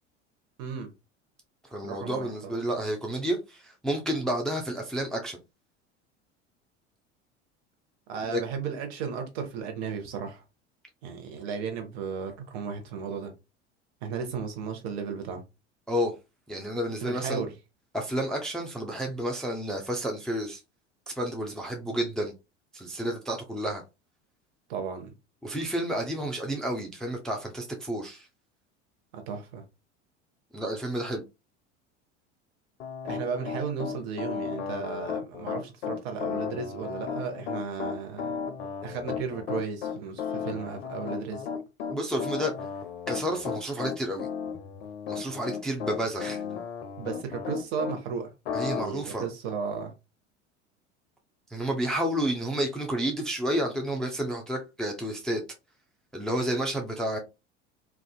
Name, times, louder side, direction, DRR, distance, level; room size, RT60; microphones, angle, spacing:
voice 1, 0.6-0.9 1.8-2.6 8.1-10.4 11.0-13.3 14.0-15.4 17.0-17.5 24.7-25.1 29.1-29.6 33.0-38.3 38.8-41.5 47.0-48.3 48.7-49.9, right 6 dB, 60° right, 0.9 m, -34 dB
voice 2, 1.7-5.4 8.3-8.4 15.9-16.1 16.5-17.4 17.9-20.6 21.1-22.3 22.7-23.8 25.4-28.3 30.5-31.2 41.9-42.5 43.1-44.3 45.1-46.4 48.5-49.3 51.5-55.4 56.1-57.2, right 1 dB, ahead, 0.4 m, -30 dB
Piano, 32.8-48.0 48.4-48.8, left 6 dB, 65° left, 0.5 m, -34 dB
2.4 x 2.3 x 2.3 m
figure-of-eight pair, 75°, 36 cm